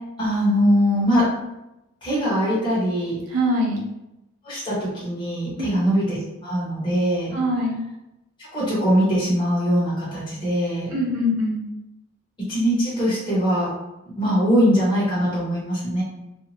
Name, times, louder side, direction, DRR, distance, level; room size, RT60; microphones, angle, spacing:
voice 1, 0.2-1.2 2.0-3.2 4.4-7.3 8.4-10.9 12.5-13.7 14.2-16.0, equal, 20° left, -9 dB, 1.0 m, -22 dB
voice 2, 3.3-3.8 5.6-5.7 7.3-7.8 10.9-11.7, equal, 80° right, -2 dB, 0.8 m, -23 dB
2.6 x 2.4 x 2.8 m, 0.91 s
head